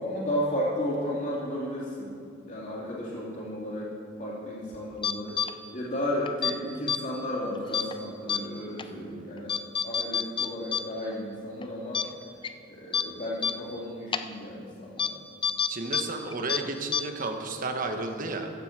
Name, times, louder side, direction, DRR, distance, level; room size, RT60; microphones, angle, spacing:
voice 1, 0.0-2.1 2.5-3.9 4.2-5.4 5.7-9.6 9.8-12.1 12.7-15.2, equal, 40° left, -6 dB, 3.2 m, -33 dB
sound 1, 5.0-5.5 6.3-6.5 6.9-7.0 7.7-7.9 8.3-8.4 8.8-8.9 9.5-10.8 11.1-11.2 11.6-11.7 11.9-12.0 12.4-12.5 12.9-13.0 13.4-13.5 14.1-14.2 15.0-15.1 15.4-16.0 16.3-16.6 16.9-17.0, left 7 dB, 25° left, 0.5 m, -27 dB
voice 2, 8.8-9.4 15.7-18.5, right 3 dB, 45° right, 4 dB, 1.2 m, -33 dB
15.0 x 7.7 x 7.5 m, 2.5 s
head